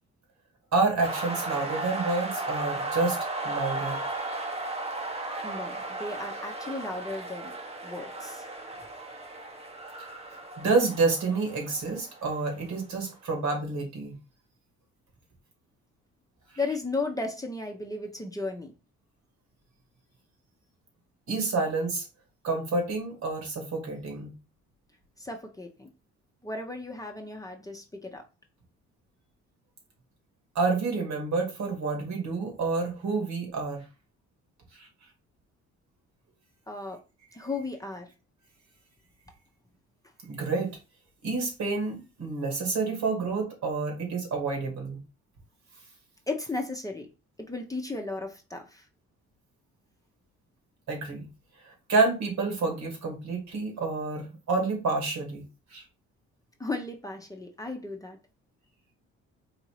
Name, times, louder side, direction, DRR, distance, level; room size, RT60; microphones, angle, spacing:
voice 1, 0.7-3.2 3.4-4.0 10.6-14.1 21.3-22.0 22.4-24.3 30.6-33.8 34.8-34.9 40.3-40.7 41.2-45.0 50.9-51.3 51.6-55.4 55.7-55.8, right 3 dB, 65° right, 2.2 m, -28 dB
sound 1, 1.0-12.7, right 2 dB, 20° right, 1.0 m, -35 dB
voice 2, 5.4-7.5 7.8-8.4 16.6-18.7 25.2-25.9 26.4-28.2 36.7-37.0 37.3-38.1 46.3-47.1 47.5-48.9 56.6-58.2, left 3 dB, 10° left, 0.8 m, -35 dB
4.0 x 2.7 x 4.7 m
cardioid pair, 90°, 30 cm